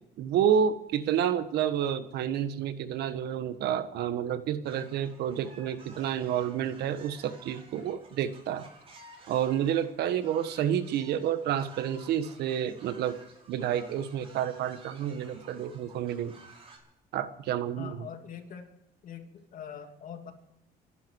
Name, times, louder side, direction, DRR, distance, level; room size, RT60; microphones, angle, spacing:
voice 1, 0.2-8.7 9.3-13.1 13.5-16.3 17.1-18.0, right 9 dB, 75° right, 11 dB, 1.4 m, -29 dB
sound 1, 4.6-16.8, right 3 dB, 35° right, 5.5 m, -53 dB
voice 2, 17.8-18.7 19.0-20.3, left 8 dB, 55° left, 5 dB, 2.6 m, -43 dB
25.5 x 12.0 x 4.7 m, 0.82 s
cardioid pair, 110°, 17 cm